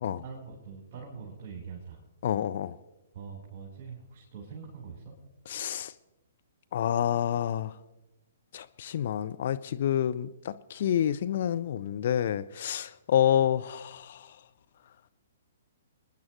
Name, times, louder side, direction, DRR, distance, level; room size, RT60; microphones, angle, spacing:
voice 1, 0.2-2.0 3.1-5.1, right 6 dB, 35° right, -3 dB, 4.1 m, -43 dB
voice 2, 2.2-2.8 5.5-5.9 6.7-7.7 8.5-14.3, left 10 dB, 50° left, 12 dB, 0.5 m, -28 dB
29.0 x 10.5 x 3.1 m, 1.0 s
figure-of-eight pair, 120°, 0 cm